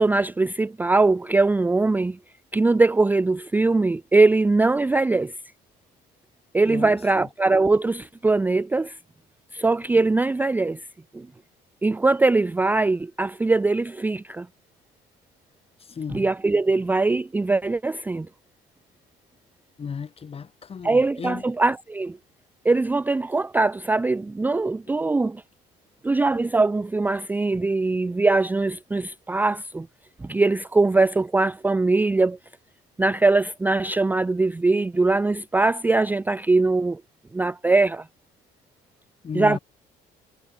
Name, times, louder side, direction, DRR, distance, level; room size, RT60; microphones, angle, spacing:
voice 1, 0.0-2.2 2.5-5.3 6.5-8.9 9.5-10.8 11.1-11.3 11.8-14.5 16.1-18.3 20.8-22.2 22.6-25.4 26.0-29.9 30.2-32.4 33.0-37.0 37.3-38.1 39.3-39.6, right 3 dB, 10° right, 0.4 m, -21 dB
voice 2, 6.7-7.3 15.8-16.3 19.8-21.4 39.2-39.6, left 6 dB, 35° left, 3.9 m, -34 dB
cardioid pair, 110°, 17 cm